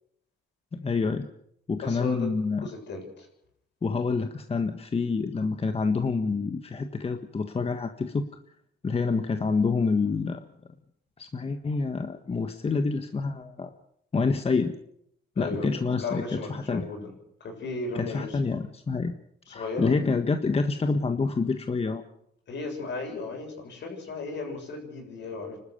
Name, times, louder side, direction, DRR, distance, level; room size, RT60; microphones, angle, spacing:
voice 1, 0.7-1.3 1.7-2.7 3.8-8.2 8.8-10.4 11.2-13.7 14.1-14.8 15.4-16.9 17.9-19.1 19.5-22.0, left 4 dB, 30° left, 7 dB, 1.5 m, -27 dB
voice 2, 1.8-3.3 15.4-17.1 17.4-18.4 19.5-20.0 22.5-25.6, left 3 dB, 65° left, 3 dB, 7.5 m, -35 dB
30.0 x 13.0 x 6.8 m, 0.72 s
cardioid pair, 90°, 20 cm